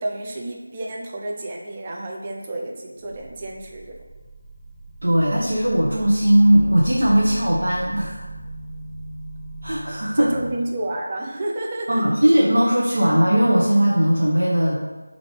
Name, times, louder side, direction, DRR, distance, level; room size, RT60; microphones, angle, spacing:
voice 1, 0.0-4.0 10.1-12.0, right 1 dB, 20° right, -1 dB, 0.4 m, -30 dB
sound 1, 3.0-10.5, right 2 dB, 35° right, 0.8 m, -37 dB
voice 2, 5.0-8.2 9.6-10.3 11.9-14.8, equal, 65° right, -5 dB, 0.7 m, -18 dB
4.9 x 2.5 x 3.3 m, 1.2 s
figure-of-eight pair, 175°, 0 cm